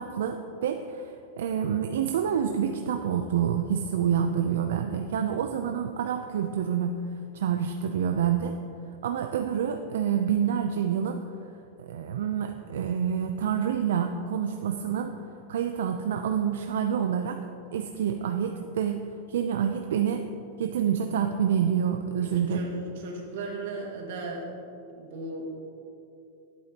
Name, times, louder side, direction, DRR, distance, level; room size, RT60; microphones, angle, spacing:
voice 1, 0.0-7.0 7.3-8.6 9.0-11.2 11.8-15.2 15.5-17.5 17.7-20.3 20.6-22.6, right 8 dB, 90° right, 6 dB, 0.4 m, -27 dB
voice 2, 22.2-24.5 25.0-25.5, right 2 dB, 70° right, -1 dB, 1.8 m, -36 dB
11.0 x 8.5 x 2.9 m, 2.7 s
supercardioid pair, 160°, 0 cm